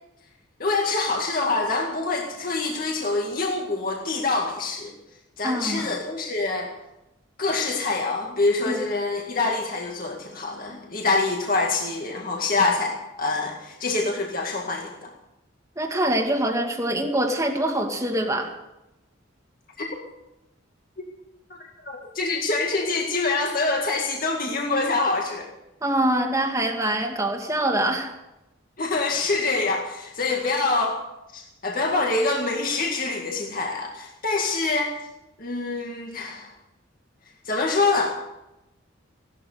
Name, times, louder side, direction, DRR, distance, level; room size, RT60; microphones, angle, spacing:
voice 1, 0.6-4.9 5.4-6.7 7.4-15.1 19.8-19.9 21.0-21.1 21.5-21.6 21.8-25.5 28.8-31.0 31.3-34.9 35.4-36.5 37.4-38.3, left 3 dB, 45° left, 0 dB, 2.1 m, -25 dB
voice 2, 5.4-5.9 8.6-8.8 15.8-18.5 25.8-28.1, right 1 dB, 15° right, 3 dB, 2.0 m, -24 dB
16.5 x 12.5 x 6.7 m, 0.93 s
head